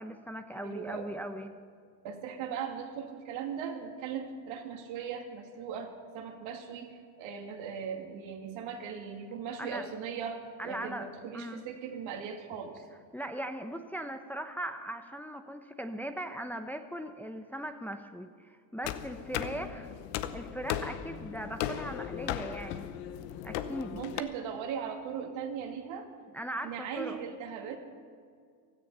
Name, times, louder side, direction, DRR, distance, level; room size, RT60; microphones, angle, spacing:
voice 1, 0.0-1.5 9.6-9.9 10.6-11.1 11.3-11.6 13.1-19.9 20.3-22.9 23.4-24.0 26.3-27.2, right 1 dB, 5° left, 6 dB, 0.8 m, -39 dB
voice 2, 0.6-1.1 2.0-12.8 23.9-26.1 26.6-27.8, right 7 dB, 70° right, 3 dB, 2.5 m, -39 dB
sound 1, 18.8-24.2, left 11 dB, 80° left, 1.0 m, -37 dB
16.5 x 13.5 x 5.6 m, 2.2 s
supercardioid pair, 95°, 48 cm